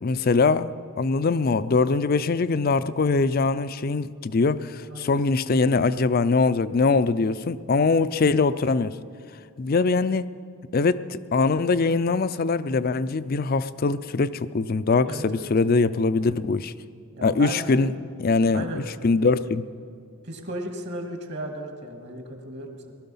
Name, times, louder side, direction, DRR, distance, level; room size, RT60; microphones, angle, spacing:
voice 1, 0.0-9.0 9.6-10.3 10.7-16.7 17.2-17.9 18.2-19.7, left 4 dB, 45° left, 15 dB, 0.4 m, -22 dB
voice 2, 15.0-15.5 17.2-17.9 18.5-18.9 20.2-22.9, right 1 dB, 50° right, 4 dB, 1.9 m, -35 dB
19.0 x 12.5 x 5.5 m, 2.5 s
head